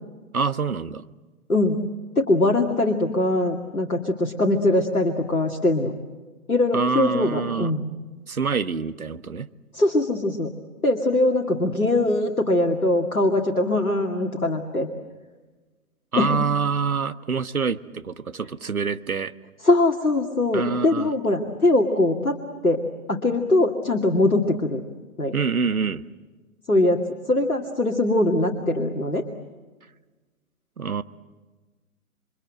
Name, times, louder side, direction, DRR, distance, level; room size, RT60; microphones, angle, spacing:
voice 1, 0.3-1.1 6.7-7.7 8.3-9.5 16.1-19.3 20.5-21.1 25.3-26.0 30.8-31.0, right 5 dB, 75° right, 12 dB, 1.4 m, -26 dB
voice 2, 2.2-5.9 6.5-7.8 9.7-10.5 10.8-14.9 16.2-16.3 19.6-22.4 22.6-22.8 23.1-24.8 25.2-25.4 26.7-29.2, left 2 dB, 85° left, 2 dB, 2.6 m, -22 dB
29.0 x 25.0 x 7.7 m, 1.3 s
figure-of-eight pair, 135°, 43 cm